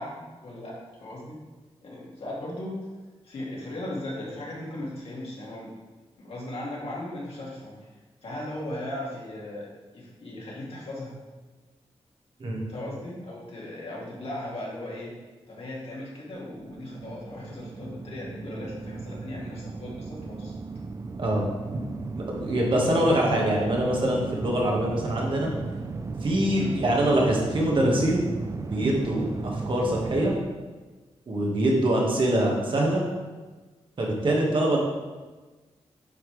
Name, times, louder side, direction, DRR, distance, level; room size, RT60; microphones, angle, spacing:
voice 1, 0.0-1.4 1.8-2.8 3.2-5.8 6.2-7.9 8.2-11.2 12.7-15.1 15.5-20.5 23.1-23.5 26.5-26.8, left 1 dB, 65° left, -5 dB, 2.4 m, -37 dB
sound 1, 16.4-30.4, right 4 dB, 30° right, 0.4 m, -36 dB
voice 2, 22.3-25.5 26.2-28.2 28.7-30.3 31.3-33.1 34.0-34.8, right 1 dB, 50° right, -2 dB, 1.8 m, -24 dB
9.1 x 5.7 x 3.4 m, 1.3 s
wide cardioid pair, 135°, 11 cm